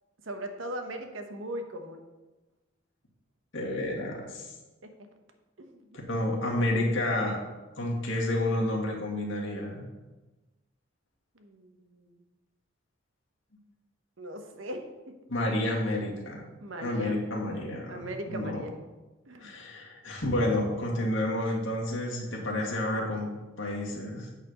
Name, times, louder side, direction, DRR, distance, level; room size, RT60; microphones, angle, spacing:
voice 1, 0.2-2.0 4.8-4.9 5.6-6.0 11.3-12.2 14.2-15.1 16.6-17.4 17.9-18.8 19.3-19.5 21.0-21.1, right 1 dB, 75° right, 5 dB, 1.1 m, -39 dB
voice 2, 3.5-4.5 6.1-7.4 7.8-9.9 15.3-16.4 16.8-18.6 19.4-24.3, left 1 dB, 70° left, -2 dB, 2.0 m, -30 dB
8.9 x 4.2 x 6.5 m, 1.2 s
head